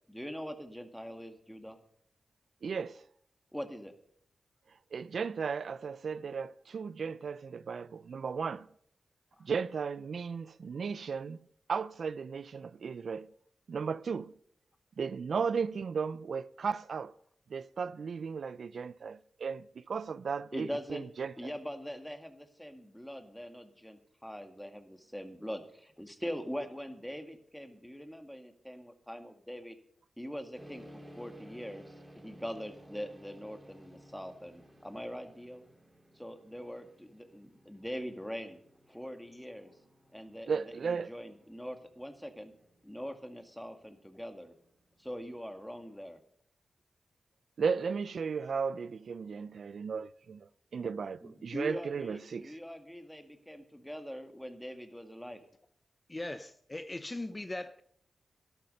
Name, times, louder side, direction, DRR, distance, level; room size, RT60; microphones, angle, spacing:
voice 1, 0.1-1.8 3.5-3.9 20.5-21.0 21.4-29.8 30.2-35.7 36.2-38.6 38.9-39.7 40.1-42.5 42.8-44.5 45.0-46.2 51.2-55.4, equal, 5° left, 2.0 m, -42 dB
voice 2, 2.6-3.0 4.9-8.7 9.4-11.4 11.7-13.2 13.7-14.3 15.0-17.1 17.5-21.5 40.5-41.1 47.6-52.6, right 5 dB, 70° right, 0.4 m, -35 dB
sound 1, 30.5-46.0, equal, 20° right, 5.0 m, -57 dB
voice 3, 56.1-57.8, left 2 dB, 25° left, 0.7 m, -39 dB
12.0 x 12.0 x 5.4 m
cardioid pair, 55°, 0 cm